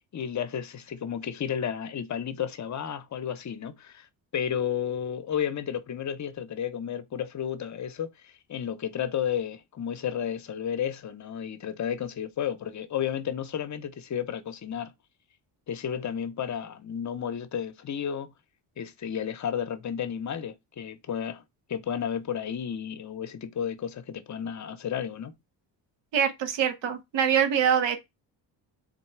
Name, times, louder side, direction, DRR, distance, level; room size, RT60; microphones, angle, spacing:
voice 1, 0.1-4.1 4.3-14.9 15.7-18.3 18.8-21.4 21.7-25.3, left 8 dB, 40° left, 0.7 m, -32 dB
voice 2, 26.1-28.0, right 8 dB, 75° right, 0.9 m, -24 dB
3.9 x 2.3 x 4.4 m
cardioid pair, 100°, 44 cm